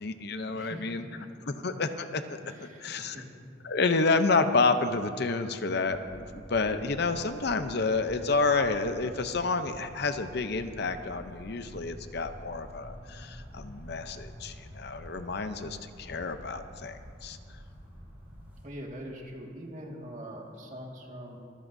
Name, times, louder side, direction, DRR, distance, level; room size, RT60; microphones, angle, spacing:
voice 1, 0.0-1.0 1.5-3.2 3.6-17.4, left 3 dB, 55° left, 9 dB, 0.7 m, -29 dB
voice 2, 0.5-1.5 2.4-3.3 18.6-21.4, equal, 40° right, -1 dB, 1.9 m, -43 dB
sound 1, 5.8-18.6, equal, 10° right, 4.6 m, -47 dB
24.5 x 15.0 x 2.7 m, 2.3 s
head